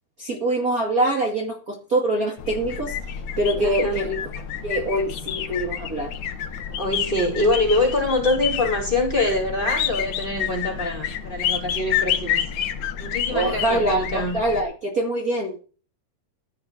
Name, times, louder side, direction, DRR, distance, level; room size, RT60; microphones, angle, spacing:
voice 1, 0.2-3.0 3.4-4.2 4.6-6.1 13.3-15.6, right 1 dB, 30° right, 1 dB, 2.5 m, -24 dB
sound 1, 2.4-14.6, left 9 dB, 75° left, 2.5 m, -29 dB
voice 2, 3.5-4.0 6.8-12.4 13.0-14.4, left 2 dB, 15° left, 0 dB, 4.7 m, -24 dB
15.0 x 6.4 x 6.5 m, 0.37 s
omnidirectional pair, 3.3 m